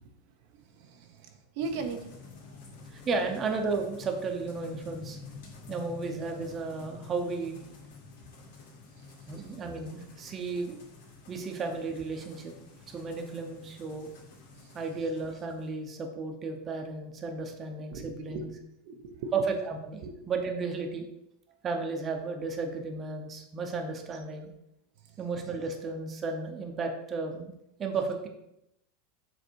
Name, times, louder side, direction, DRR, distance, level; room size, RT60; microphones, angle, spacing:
voice 1, 0.8-1.3 1.6-2.1 2.5-2.6 9.0-9.1 14.6-14.7 17.9-18.5 18.9-19.3 20.0-20.1, right 4 dB, 60° right, 4 dB, 0.7 m, -38 dB
sound 1, 1.6-15.7, left 4 dB, 75° left, 2.4 m, -50 dB
voice 2, 2.9-5.2 5.7-7.6 9.3-10.8 11.3-12.5 12.9-14.1 14.7-18.5 19.3-21.0 21.6-24.5 25.2-27.5 27.8-28.3, right 4 dB, 25° right, 3 dB, 0.9 m, -33 dB
6.8 x 3.9 x 4.6 m, 0.82 s
supercardioid pair, 155°, 0 cm